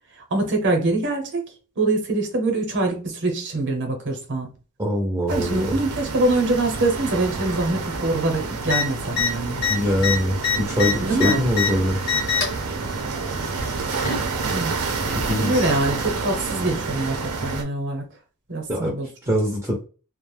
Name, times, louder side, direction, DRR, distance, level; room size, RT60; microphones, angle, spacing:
voice 1, 0.2-1.4 1.8-4.5 5.3-9.6 11.0-11.4 14.5-14.9 15.4-18.0 18.5-19.1, right 2 dB, 55° right, 0.8 m, -24 dB
voice 2, 4.8-5.7 9.7-12.0 14.5-14.6 15.2-15.7 18.7-18.9 19.3-19.7, equal, 15° right, 0.6 m, -23 dB
sound 1, 5.3-17.6, right 4 dB, 85° right, 0.6 m, -29 dB
sound 2, 8.6-8.8 9.1-9.3 9.6-11.7 12.0-12.6 13.6-14.3 15.3-15.4, left 7 dB, 40° left, 1.0 m, -24 dB
2.4 x 2.1 x 3.2 m
head